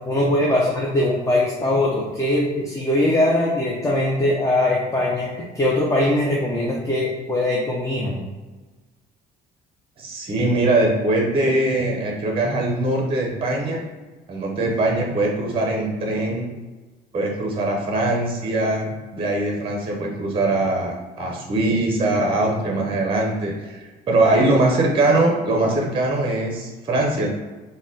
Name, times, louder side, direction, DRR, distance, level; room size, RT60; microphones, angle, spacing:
voice 1, 0.0-8.2, left 1 dB, 20° left, -3 dB, 0.5 m, -21 dB
voice 2, 10.0-13.8 14.3-16.5 17.1-27.3, right 2 dB, 30° right, 1 dB, 0.7 m, -22 dB
3.8 x 2.2 x 3.6 m, 1.2 s
cardioid pair, 110°, 17 cm